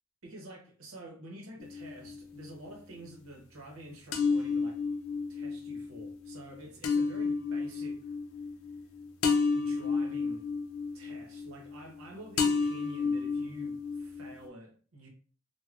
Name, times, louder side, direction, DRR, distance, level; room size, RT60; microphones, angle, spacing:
voice 1, 0.2-4.8 5.3-8.0 9.5-10.5 10.9-15.1, right 1 dB, 90° right, 0.8 m, -48 dB
sound 1, 1.6-2.5 4.1-12.0 12.4-14.5, left 4 dB, 75° left, 0.5 m, -31 dB
3.3 x 2.2 x 2.4 m
head